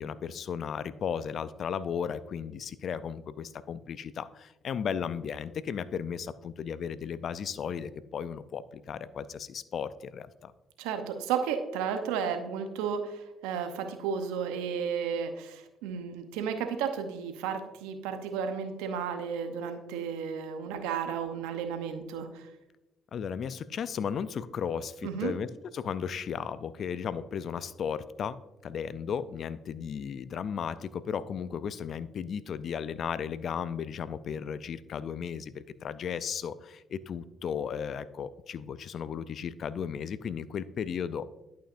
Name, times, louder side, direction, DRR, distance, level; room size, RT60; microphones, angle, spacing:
voice 1, 0.0-10.5 23.1-25.5 25.7-41.3, left 7 dB, 60° left, 16 dB, 0.4 m, -35 dB
voice 2, 10.8-22.5 25.0-25.3, right 7 dB, 85° right, 7 dB, 0.7 m, -33 dB
11.0 x 5.6 x 2.5 m, 0.99 s
hypercardioid pair, 50°, 0 cm